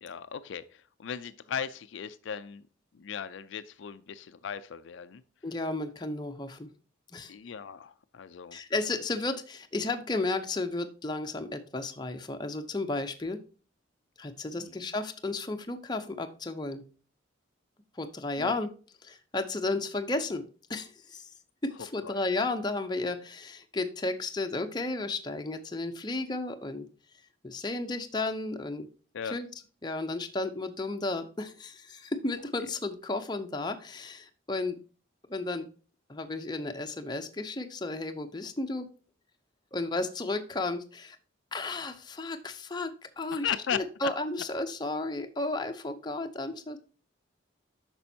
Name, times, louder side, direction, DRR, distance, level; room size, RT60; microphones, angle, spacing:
voice 1, 0.0-2.6 2.9-5.2 7.3-8.6 14.6-14.9 18.4-18.5 22.0-22.1 29.1-29.4 43.3-43.8, left 8 dB, 70° left, 12 dB, 0.4 m, -37 dB
voice 2, 5.4-6.7 7.1-7.3 8.5-13.4 14.2-16.8 17.9-18.7 19.0-20.4 20.7-21.3 21.6-26.9 27.4-28.9 29.2-29.5 29.8-34.8 35.3-35.7 36.1-38.9 39.7-41.2 41.5-46.8, left 2 dB, 20° left, 6 dB, 0.6 m, -33 dB
8.5 x 6.1 x 2.7 m, 0.38 s
head